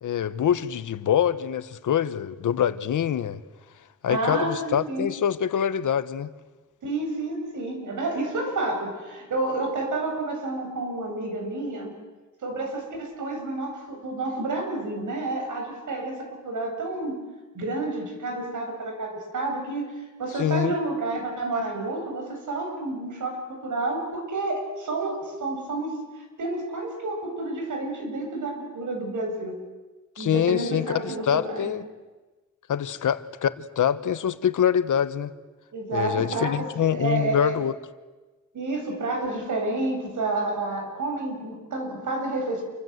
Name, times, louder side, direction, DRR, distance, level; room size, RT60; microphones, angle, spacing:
voice 1, 0.0-3.4 4.0-6.3 20.4-20.7 30.2-31.8 32.7-35.3 35.9-37.7, left 9 dB, 85° left, 13 dB, 1.3 m, -25 dB
voice 2, 4.1-5.1 6.8-11.9 12.4-17.2 17.5-19.9 20.2-29.6 30.2-31.7 35.7-37.6 38.5-42.6, right 2 dB, 75° right, 3 dB, 7.5 m, -30 dB
28.5 x 24.5 x 8.1 m, 1.2 s
wide cardioid pair, 140°, 30 cm